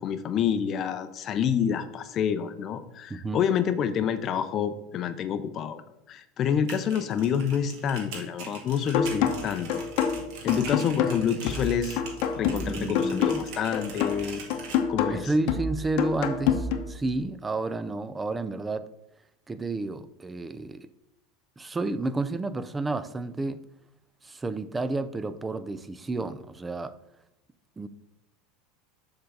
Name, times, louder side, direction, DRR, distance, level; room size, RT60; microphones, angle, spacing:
voice 1, 0.0-5.8 6.1-9.8 10.4-12.0 12.4-14.4 14.9-15.3, left 8 dB, 35° left, 11 dB, 0.6 m, -28 dB
sound 1, 6.5-14.8, right 5 dB, 65° right, 2.0 m, -42 dB
sound 2, 8.9-16.9, left 7 dB, 60° left, 0.9 m, -28 dB
voice 2, 12.7-13.5 15.1-18.9 19.5-20.9 21.6-23.6 24.2-26.9 27.8-27.9, right 2 dB, 15° right, 13 dB, 0.5 m, -31 dB
7.0 x 3.8 x 6.5 m, 0.85 s
supercardioid pair, 130°, 0 cm